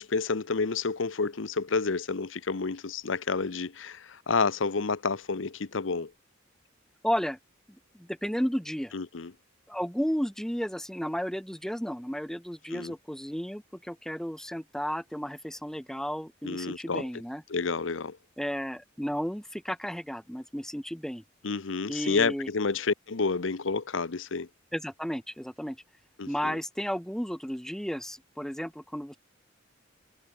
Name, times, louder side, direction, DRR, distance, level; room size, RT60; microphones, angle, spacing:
voice 1, 0.0-6.1 8.9-9.3 12.7-12.9 16.4-17.0 17.5-18.2 21.4-24.5 26.2-26.5, left 4 dB, 70° left, 0.8 m, -29 dB
voice 2, 7.0-7.4 7.9-8.9 9.7-17.4 18.4-21.2 21.9-22.5 24.7-25.8 26.3-29.2, equal, ahead, 1.3 m, -33 dB
head